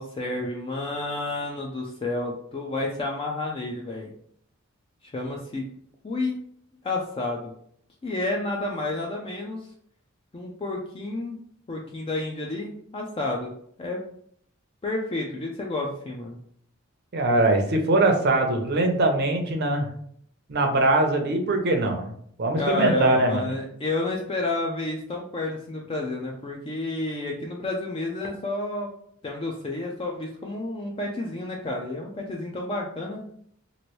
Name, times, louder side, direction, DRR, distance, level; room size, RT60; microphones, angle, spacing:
voice 1, 0.0-4.1 5.0-5.7 6.0-6.4 6.8-7.5 8.0-9.7 10.3-11.4 11.7-13.5 13.8-14.0 14.8-16.4 22.6-28.9 29.2-33.2, left 2 dB, 25° left, -1 dB, 0.4 m, -30 dB
voice 2, 17.1-19.9 20.5-22.1 22.4-23.6, right 2 dB, 50° right, 4 dB, 0.6 m, -22 dB
3.0 x 2.5 x 3.0 m, 0.64 s
head